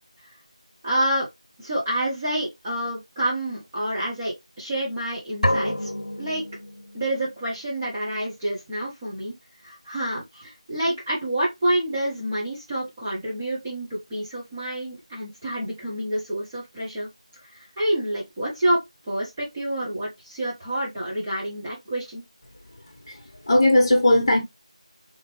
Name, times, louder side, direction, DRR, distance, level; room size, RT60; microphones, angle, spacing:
voice 1, 0.8-1.3 1.6-6.5 6.9-9.3 9.6-17.1 17.4-18.8 19.1-22.2, right 1 dB, 10° right, 0.7 m, -28 dB
sound 1, 5.4-7.2, left 1 dB, 90° left, 0.6 m, -27 dB
voice 2, 23.1-24.4, left 1 dB, 35° left, 1.5 m, -18 dB
3.9 x 3.5 x 3.1 m
figure-of-eight pair, 175°, 4 cm